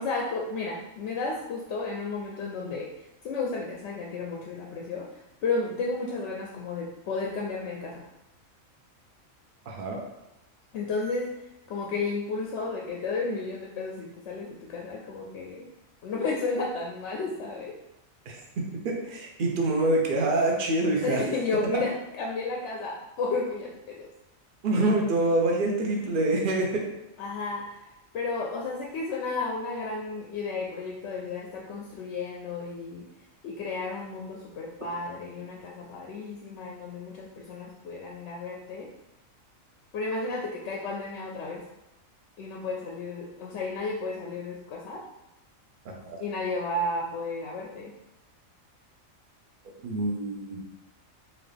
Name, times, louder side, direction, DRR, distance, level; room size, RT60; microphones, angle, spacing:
voice 1, 0.0-2.9 3.2-5.1 5.4-8.1 10.7-11.4 11.7-15.7 16.0-17.8 21.0-24.1 27.2-27.8 28.1-33.1 33.4-38.9 39.9-41.6 42.4-45.0 46.2-47.9, left 3 dB, 65° left, -1 dB, 0.8 m, -32 dB
voice 2, 9.7-10.0 18.3-21.2 21.7-21.8 24.6-26.9 45.8-46.2 49.8-50.6, right 2 dB, 50° right, 0 dB, 0.7 m, -26 dB
3.9 x 2.5 x 3.3 m, 0.89 s
omnidirectional pair, 1.4 m